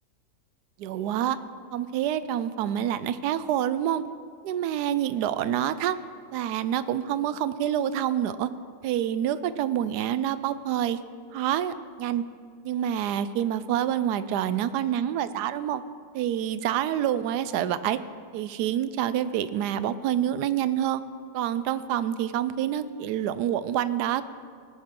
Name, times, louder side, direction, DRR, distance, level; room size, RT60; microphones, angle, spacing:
voice 1, 0.8-1.4 1.7-4.0 4.4-6.0 6.3-8.5 8.8-11.0 11.3-12.2 12.6-15.8 16.1-18.0 18.3-21.0 21.3-24.2, right 10 dB, 75° right, 14 dB, 1.0 m, -27 dB
18.5 x 10.5 x 3.7 m, 2.2 s
omnidirectional pair, 1.9 m